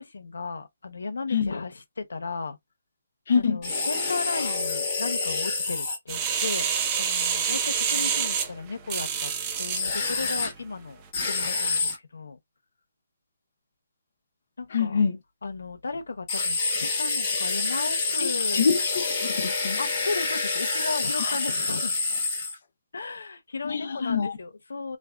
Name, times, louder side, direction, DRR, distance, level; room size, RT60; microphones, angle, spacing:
voice 1, 0.0-2.6 3.3-9.3 9.6-12.4 14.6-15.0 15.4-18.7 19.8-22.0 22.9-25.0, left 4 dB, 90° left, 0.6 m, -35 dB
voice 2, 3.3-3.6 14.7-15.2 18.2-19.8 21.2-21.4 23.6-24.4, left 6 dB, 45° left, 0.5 m, -26 dB
sound 1, 3.6-6.0 9.7-10.5 11.1-12.0 16.3-22.6, left 3 dB, 20° left, 1.0 m, -27 dB
sound 2, 6.1-9.8 10.4-10.5, right 7 dB, 15° right, 0.3 m, -27 dB
3.3 x 2.1 x 2.2 m
hypercardioid pair, 175°, 0 cm